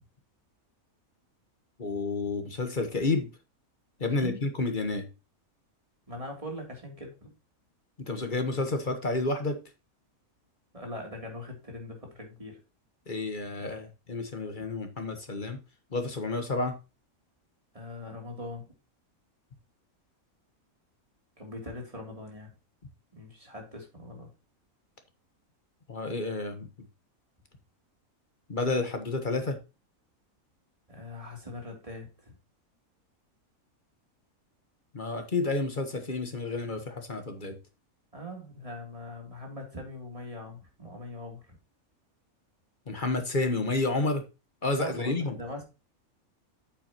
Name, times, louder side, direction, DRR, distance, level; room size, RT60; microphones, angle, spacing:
voice 1, 1.8-3.3 4.0-5.1 8.0-9.6 13.1-15.6 15.9-16.8 25.9-26.7 28.5-29.6 34.9-37.6 42.9-44.2 44.6-45.4, left 3 dB, 35° left, 1.3 m, -30 dB
voice 2, 4.1-4.4 6.1-7.3 10.7-12.6 17.7-18.7 21.4-22.5 23.1-24.3 30.9-32.3 38.1-41.6 44.7-45.6, left 1 dB, 25° right, 3.1 m, -41 dB
8.7 x 7.9 x 2.9 m
omnidirectional pair, 1.5 m